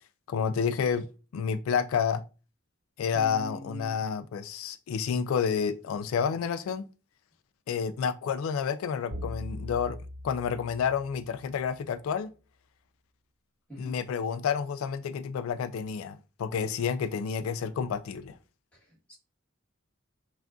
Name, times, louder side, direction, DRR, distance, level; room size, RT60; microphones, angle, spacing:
voice 1, 0.3-1.1 1.3-2.2 3.0-6.9 7.7-10.0 10.2-12.3 13.8-18.4, left 7 dB, 75° left, 0.3 m, -29 dB
voice 2, 3.1-4.0 13.7-14.0 18.7-19.1, right 1 dB, 5° left, 1.5 m, -43 dB
sound 1, 9.1-11.6, left 1 dB, 60° right, 0.8 m, -40 dB
5.7 x 2.5 x 2.5 m
head